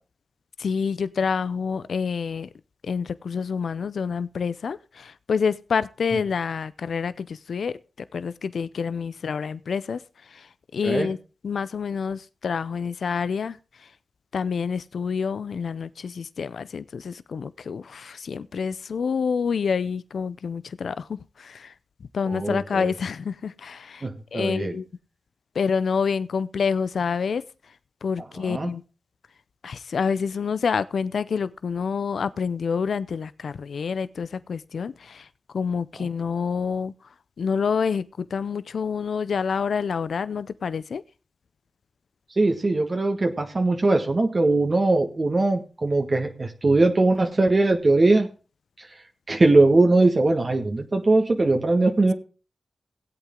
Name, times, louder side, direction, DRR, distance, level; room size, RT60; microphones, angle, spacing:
voice 1, 0.6-2.5 2.8-11.2 11.4-13.9 14.3-21.7 22.1-24.9 25.5-27.4 28.0-28.8 29.6-35.3 35.5-36.9 37.4-41.0, left 6 dB, 75° left, 0.5 m, -28 dB
voice 2, 22.2-22.9 24.0-24.8 28.4-28.7 36.0-36.1 42.4-48.3 48.8-48.9 49.3-52.1, right 2 dB, 45° right, 1.6 m, -21 dB
16.5 x 8.3 x 3.7 m
cardioid pair, 45°, 0 cm